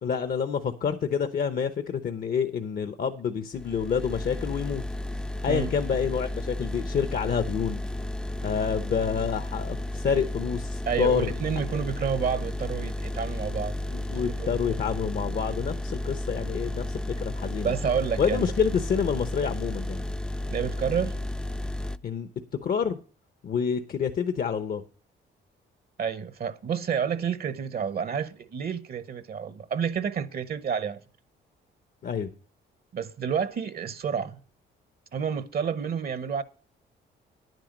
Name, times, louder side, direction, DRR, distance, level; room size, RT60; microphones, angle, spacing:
voice 1, 0.0-4.8 5.4-7.8 8.4-11.3 13.9-17.7 18.2-20.0 22.0-22.3 22.6-23.0 23.4-24.8 32.0-32.3, left 7 dB, 50° left, 0.8 m, -28 dB
sound 1, 3.5-22.0, left 1 dB, 5° left, 0.5 m, -33 dB
voice 2, 10.9-14.7 17.6-18.5 20.5-21.1 26.0-31.0 32.9-34.4 35.1-36.4, right 7 dB, 50° right, 0.8 m, -30 dB
10.0 x 9.2 x 5.2 m
cardioid pair, 90°, 20 cm